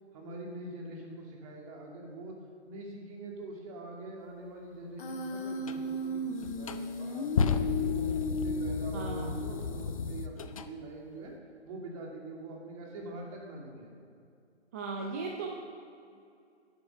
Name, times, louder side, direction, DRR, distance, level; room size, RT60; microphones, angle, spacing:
voice 1, 0.1-2.4 2.7-6.2 6.5-11.3 11.6-13.9, right 2 dB, 30° right, -1 dB, 2.5 m, -44 dB
Human voice, 5.0-10.0, left 3 dB, 50° left, 1.5 m, -35 dB
sound 1, 5.6-5.8 6.4-10.7, left 5 dB, 30° left, 0.5 m, -33 dB
voice 2, 8.9-9.4 14.7-15.5, right 4 dB, 15° right, 0 dB, 0.5 m, -37 dB
11.0 x 8.0 x 6.8 m, 2.4 s
figure-of-eight pair, 145°, 34 cm